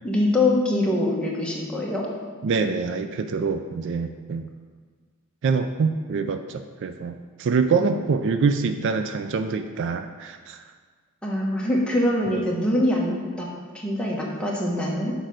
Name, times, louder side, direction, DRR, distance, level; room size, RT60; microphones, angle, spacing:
voice 1, 0.0-2.1 11.2-13.5 13.7-15.1, left 1 dB, 5° left, -4 dB, 1.2 m, -23 dB
voice 2, 2.4-4.5 5.4-10.6, right 5 dB, 55° right, 8 dB, 0.4 m, -25 dB
6.5 x 4.7 x 6.2 m, 1.5 s
head